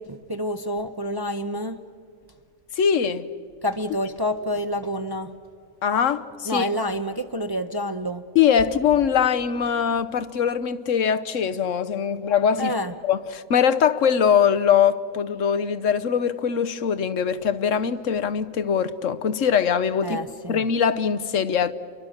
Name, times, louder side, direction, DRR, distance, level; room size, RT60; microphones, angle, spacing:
voice 1, 0.0-1.8 3.6-5.3 6.5-8.2 12.6-12.9 20.0-20.6, left 1 dB, 25° right, 0.6 m, -28 dB
voice 2, 2.8-3.2 5.8-6.7 8.3-12.7 13.0-20.2 20.5-21.7, left 7 dB, 70° left, 1.1 m, -22 dB
29.5 x 23.5 x 6.5 m
omnidirectional pair, 1.4 m